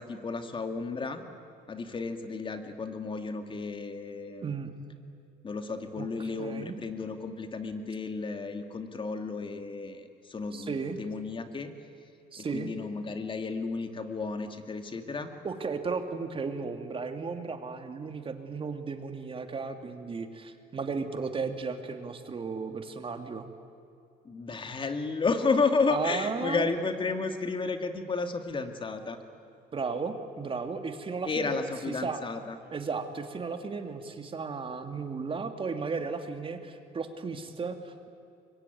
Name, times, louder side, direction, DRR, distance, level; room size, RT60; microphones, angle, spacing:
voice 1, 0.0-1.4 1.7-4.4 5.4-11.7 12.4-15.3 24.2-29.2 31.3-32.6, left 4 dB, 30° left, 7 dB, 2.4 m, -32 dB
voice 2, 4.4-4.7 6.0-6.1 6.4-6.8 10.5-11.0 12.3-12.7 15.4-23.5 25.9-26.7 29.7-32.2 32.7-38.1, right 4 dB, 30° right, 7 dB, 2.4 m, -35 dB
24.5 x 23.0 x 9.3 m, 2.6 s
cardioid pair, 110°, 17 cm